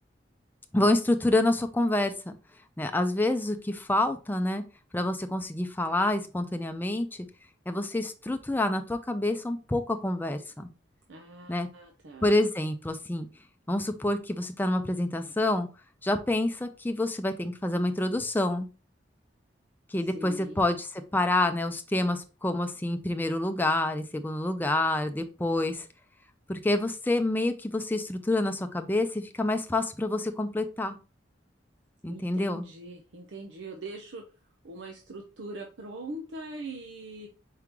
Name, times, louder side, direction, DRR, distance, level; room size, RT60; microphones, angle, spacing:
voice 1, 0.7-2.4 2.8-4.6 4.9-7.3 7.7-10.7 11.5-11.7 12.2-13.3 13.7-15.7 16.0-18.7 19.9-25.9 26.5-31.0 32.0-32.6, left 1 dB, 10° left, 6 dB, 0.4 m, -27 dB
voice 2, 11.1-12.3 20.0-20.6 32.1-34.2 34.6-37.3, right 2 dB, 90° right, 2 dB, 0.7 m, -42 dB
4.7 x 3.7 x 2.9 m, 0.32 s
head